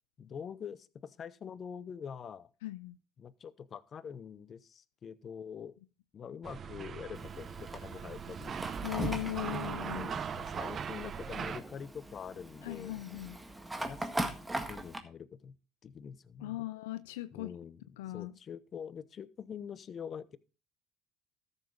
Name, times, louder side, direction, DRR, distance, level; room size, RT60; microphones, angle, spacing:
voice 1, 0.2-2.5 3.2-5.8 6.1-9.0 9.7-13.0 13.8-14.3 14.7-15.6 15.8-16.6 17.3-17.9 18.1-20.4, left 7 dB, 40° left, 0.8 m, -45 dB
voice 2, 2.6-3.0 8.8-10.1 12.6-13.4 16.4-17.5 18.0-18.3, left 17 dB, 80° left, 0.5 m, -38 dB
sound 1, 6.4-11.6, right 7 dB, 40° right, 0.7 m, -40 dB
Fire, 7.1-15.0, right 1 dB, 10° right, 1.7 m, -40 dB
13.5 x 7.1 x 3.9 m
hypercardioid pair, 75°, 0 cm